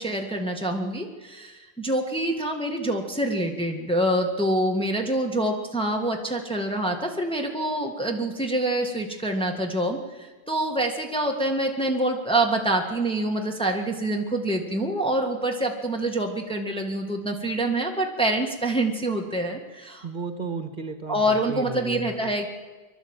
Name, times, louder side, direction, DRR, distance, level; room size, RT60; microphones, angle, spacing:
voice 1, 0.0-20.1 21.1-22.5, right 1 dB, 5° left, 1 dB, 1.8 m, -26 dB
voice 2, 20.0-22.3, right 4 dB, 50° right, 8 dB, 1.7 m, -34 dB
25.0 x 12.0 x 8.9 m, 1.3 s
omnidirectional pair, 1.1 m